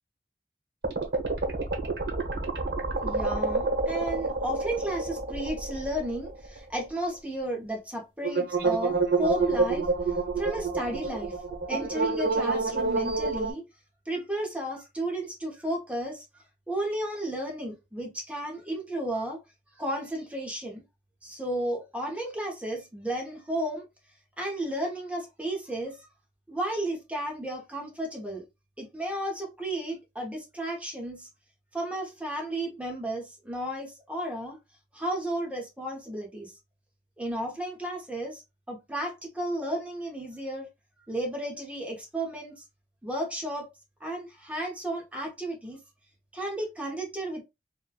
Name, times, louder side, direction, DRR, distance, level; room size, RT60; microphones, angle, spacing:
sound 1, 0.8-6.6 6.8-6.9 8.2-13.5, right 3 dB, 85° right, 0.7 m, -28 dB
voice 1, 3.0-11.3 11.7-13.6 14.1-19.4 19.8-20.8 21.2-23.9 24.4-26.1 26.5-28.4 28.8-31.3 31.7-34.6 34.9-36.5 37.2-38.4 38.7-40.7 41.1-42.6 43.0-43.7 44.0-45.8 46.3-47.4, right 1 dB, 10° right, 0.8 m, -33 dB
3.0 x 2.2 x 2.2 m
head